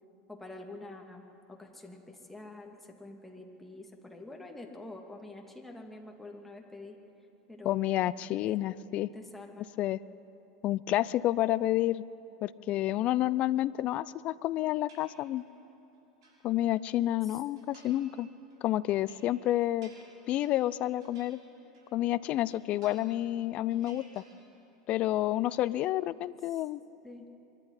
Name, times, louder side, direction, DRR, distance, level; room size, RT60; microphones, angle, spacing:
voice 1, 0.3-7.0 7.5-8.1 8.5-8.6 9.1-9.7 17.2-17.4 26.5-26.6 27.0-27.3, left 2 dB, 5° left, 1 dB, 2.5 m, -47 dB
voice 2, 7.6-9.1 9.8-10.0 10.6-12.0 12.4-15.4 16.4-18.3 18.6-19.9 20.3-21.4 21.9-24.2 24.9-26.8, left 14 dB, 50° left, 19 dB, 0.5 m, -29 dB
sound 1, 14.9-15.6 15.9-17.0 17.5-18.2 18.5-22.0 22.3-23.4 23.7-24.8 25.0-25.7, right 3 dB, 75° right, 5.6 m, -60 dB
24.5 x 11.5 x 10.0 m, 3.0 s
hypercardioid pair, 95°, 3 cm